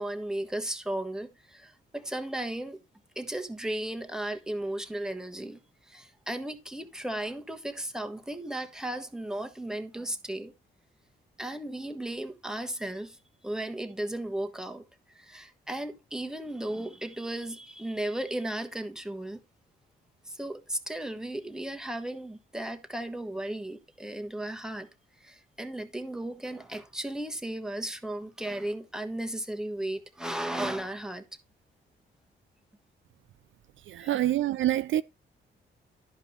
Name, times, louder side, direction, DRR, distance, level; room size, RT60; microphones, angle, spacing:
voice 1, 0.0-2.8 3.1-10.5 11.4-13.2 13.4-14.8 15.1-19.4 20.2-24.9 25.2-31.2 33.9-34.2, right 1 dB, 5° right, 1.4 m, -35 dB
voice 2, 33.9-35.0, right 13 dB, 65° right, 0.4 m, -26 dB
11.0 x 5.4 x 4.1 m
cardioid pair, 70°, 21 cm